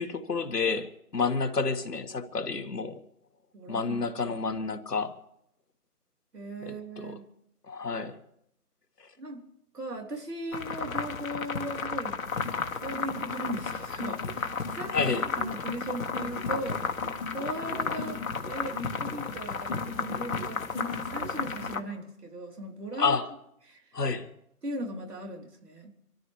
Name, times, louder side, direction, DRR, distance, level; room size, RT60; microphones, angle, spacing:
voice 1, 0.0-3.0 3.7-5.1 6.6-7.2 7.7-8.2 14.9-15.2 23.0-23.3 23.9-24.3, left 4 dB, 85° left, 1.7 m, -29 dB
voice 2, 3.5-4.0 6.3-7.3 9.2-9.5 9.7-12.2 12.8-15.0 15.2-16.8 17.3-23.2 23.7-23.8 24.6-25.9, right 1 dB, 80° right, 3.6 m, -38 dB
sound 1, 10.5-21.8, left 5 dB, 60° left, 1.5 m, -33 dB
sound 2, 12.2-21.7, left 3 dB, 10° left, 1.6 m, -42 dB
26.5 x 13.5 x 3.2 m
figure-of-eight pair, 165°, 46 cm